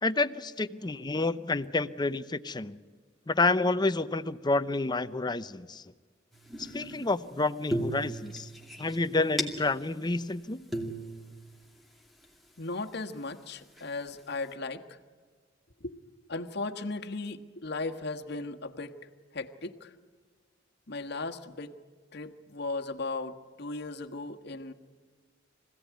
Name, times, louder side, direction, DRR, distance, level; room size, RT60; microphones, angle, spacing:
voice 1, 0.0-2.8 3.3-5.8 6.6-8.5 8.8-10.7, left 2 dB, 25° left, 12 dB, 0.7 m, -29 dB
sound 1, 6.3-7.2 7.7-9.9 10.3-10.4 10.7-12.3 12.9-13.0 13.7-14.2, right 1 dB, ahead, 2.5 m, -36 dB
voice 2, 12.6-15.0 15.8-19.0 19.3-19.9 20.9-21.8 22.1-24.7, left 3 dB, 60° left, 5 dB, 1.4 m, -37 dB
25.0 x 17.0 x 9.5 m, 1.6 s
head